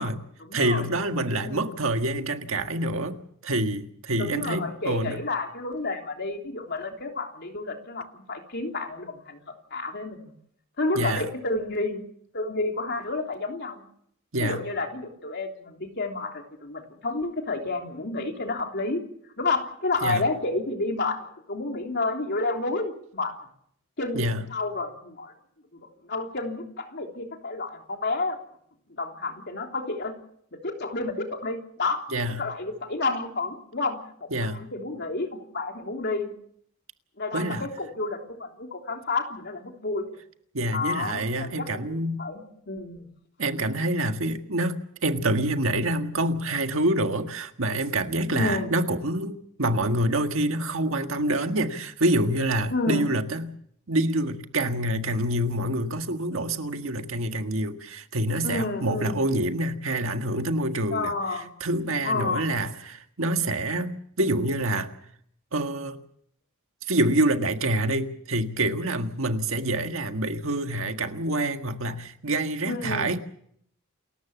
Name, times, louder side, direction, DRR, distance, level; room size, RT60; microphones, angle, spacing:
voice 1, 0.0-0.9 1.4-1.8 4.2-10.3 10.8-12.0 12.3-13.8 14.4-19.0 19.4-23.3 24.0-25.3 26.0-28.4 28.9-30.1 30.6-32.0 32.4-36.3 37.2-40.2 40.7-43.1 48.3-48.7 52.7-53.1 58.4-59.2 60.9-61.5 62.0-62.4 72.6-73.2, left 3 dB, 55° left, 3 dB, 3.3 m, -30 dB
voice 2, 0.5-5.2 10.9-11.3 14.3-14.6 20.0-20.2 24.1-24.4 32.1-32.5 34.3-34.6 37.3-37.7 40.5-42.2 43.4-53.5 53.9-61.1 61.6-64.9 65.5-66.0 66.9-73.2, right 1 dB, 70° right, 6 dB, 1.7 m, -26 dB
28.5 x 14.0 x 7.2 m, 0.69 s
head